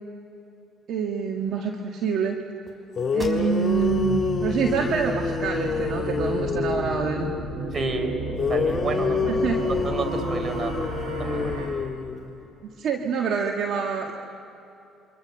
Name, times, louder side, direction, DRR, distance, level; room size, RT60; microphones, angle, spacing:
voice 1, 0.9-2.4 3.1-7.3 9.3-9.6 12.8-14.1, right 6 dB, 65° right, 2 dB, 1.9 m, -26 dB
sound 1, 2.7-2.8 3.0-7.1 8.4-12.4, left 5 dB, 35° left, 3.1 m, -27 dB
sound 2, 3.2-4.0 4.4-4.5 5.1-6.0, equal, 15° right, 5.1 m, -41 dB
sound 3, 3.7-11.7, right 2 dB, 85° right, 6.6 m, -32 dB
voice 2, 7.7-8.1 8.5-9.4 9.7-10.7 11.2-11.5, right 3 dB, 40° right, 7 dB, 4.1 m, -30 dB
28.0 x 25.0 x 6.7 m, 2.8 s
supercardioid pair, 65°, 0 cm